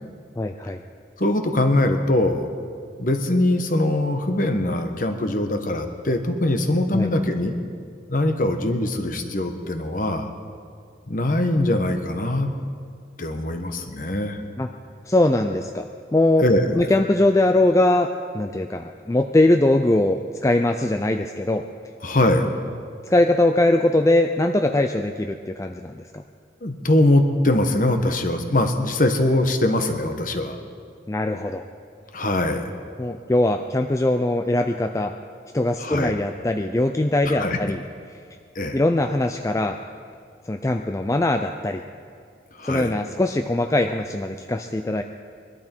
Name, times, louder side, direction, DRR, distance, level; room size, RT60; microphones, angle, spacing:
voice 1, 0.4-0.8 6.9-7.1 14.6-14.7 15.1-15.8 16.1-16.4 16.7-18.1 18.3-21.6 23.1-26.2 31.1-31.6 33.0-35.1 35.5-37.8 38.7-39.8 40.5-41.8 42.6-45.0, left 1 dB, 15° left, 5 dB, 0.4 m, -21 dB
voice 2, 1.2-2.5 3.0-7.5 8.1-10.3 11.1-12.5 13.2-14.4 16.4-16.9 22.0-22.5 26.6-30.6 32.1-32.7 35.8-36.1 37.2-37.6 38.5-38.8 42.6-42.9, left 1 dB, 45° left, 6 dB, 1.1 m, -22 dB
22.0 x 12.0 x 4.5 m, 2.2 s
head